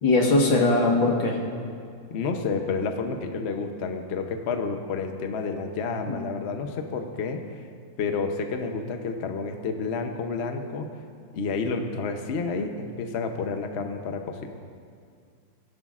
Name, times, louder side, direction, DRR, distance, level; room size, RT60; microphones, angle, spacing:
voice 1, 0.0-1.4 6.1-6.2, left 2 dB, 75° left, 0 dB, 2.2 m, -21 dB
voice 2, 2.1-7.4 8.0-10.9 11.3-14.5, left 4 dB, 55° left, 5 dB, 0.7 m, -30 dB
20.0 x 11.5 x 2.5 m, 2.2 s
omnidirectional pair, 2.1 m